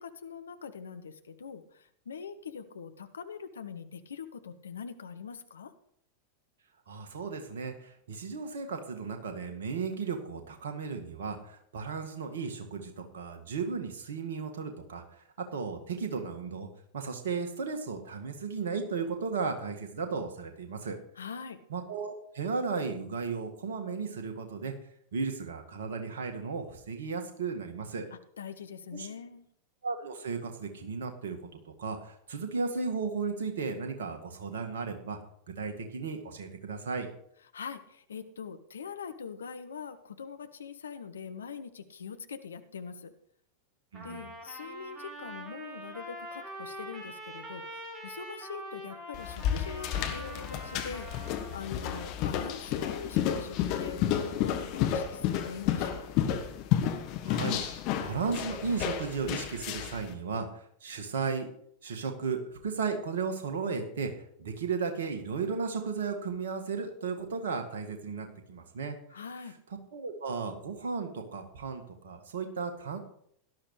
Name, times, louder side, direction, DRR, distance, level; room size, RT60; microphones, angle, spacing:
voice 1, 0.0-5.7 21.2-21.6 28.1-29.4 37.5-43.1 44.0-51.1 51.5-56.0 69.1-69.6, left 6 dB, 70° left, 10 dB, 1.0 m, -43 dB
voice 2, 6.9-15.0 15.5-16.7 16.9-21.0 21.7-24.7 25.1-28.1 28.9-29.1 29.8-31.4 31.7-35.2 35.6-37.1 43.9-44.3 51.8-52.1 57.2-57.6 58.0-61.5 61.8-64.1 64.4-69.0 69.9-73.0, right 5 dB, 60° right, 5 dB, 1.9 m, -35 dB
Trumpet, 43.9-51.7, right 1 dB, 20° right, 3.7 m, -44 dB
sound 1, 49.1-60.0, left 10 dB, 40° left, 1.3 m, -31 dB
17.5 x 12.0 x 3.3 m, 0.69 s
figure-of-eight pair, 90°, 0 cm